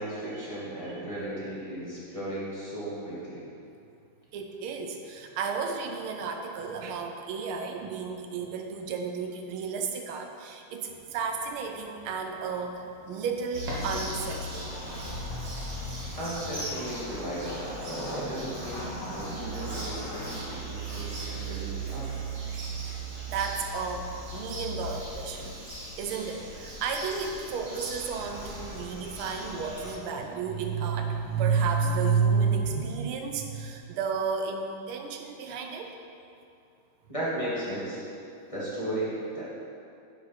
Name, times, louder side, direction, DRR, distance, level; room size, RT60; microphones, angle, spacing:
voice 1, 0.0-3.4 16.2-22.1 37.1-38.0 38.5-39.4, right 1 dB, 15° left, -10 dB, 2.0 m, -35 dB
voice 2, 4.3-14.8 23.3-35.9, right 5 dB, 85° right, 4 dB, 1.6 m, -31 dB
sound 1, 10.8-16.3, right 1 dB, 60° right, 2.1 m, -46 dB
Bird vocalization bird call bird song, 13.5-29.9, right 2 dB, 35° right, 1.5 m, -38 dB
Wood, 14.0-20.5, equal, 55° left, 1.9 m, -41 dB
8.3 x 5.1 x 5.8 m, 2.5 s
omnidirectional pair, 2.4 m